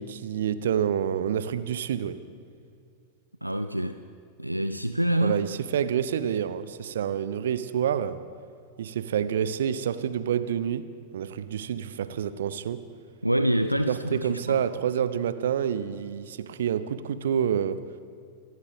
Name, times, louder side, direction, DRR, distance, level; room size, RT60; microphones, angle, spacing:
voice 1, 0.0-2.2 5.2-8.2 8.8-10.9 11.1-12.8 13.9-17.8, right 9 dB, 60° right, 14 dB, 0.7 m, -28 dB
voice 2, 3.4-4.0 4.4-5.4 13.2-14.6, right 1 dB, 90° right, 10 dB, 0.4 m, -26 dB
26.5 x 14.0 x 3.6 m, 2.3 s
figure-of-eight pair, 90°, 0 cm